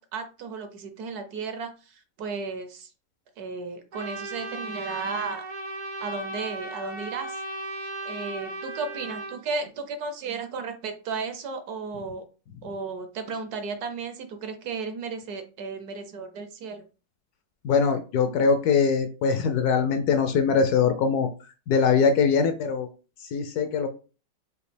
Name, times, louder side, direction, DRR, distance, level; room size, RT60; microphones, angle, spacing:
voice 1, 0.0-2.9 3.4-5.4 6.0-7.4 8.0-12.2 12.6-16.8, right 4 dB, 70° right, 7 dB, 1.1 m, -34 dB
Trumpet, 3.9-9.4, right 2 dB, 85° right, 0.4 m, -36 dB
voice 2, 17.6-21.3 21.7-22.9 23.3-23.9, left 5 dB, 70° left, 8 dB, 1.0 m, -22 dB
5.1 x 2.7 x 3.3 m, 0.34 s
omnidirectional pair, 1.9 m